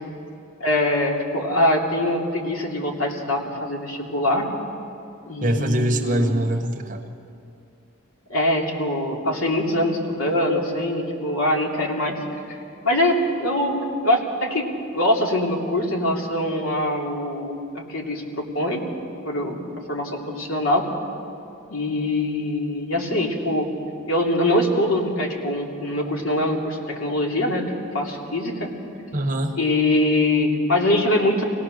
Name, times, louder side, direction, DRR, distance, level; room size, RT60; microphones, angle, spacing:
voice 1, 0.6-4.5 5.3-6.3 8.3-12.2 12.8-14.7 14.9-18.8 19.2-19.6 19.9-20.9 21.7-23.7 24.1-27.6 27.9-28.7 29.6-31.4, left 1 dB, 90° left, -1 dB, 2.9 m, -23 dB
voice 2, 5.4-7.1 29.1-29.6, right 1 dB, 40° right, 4 dB, 1.3 m, -23 dB
25.0 x 17.5 x 6.5 m, 2.6 s
head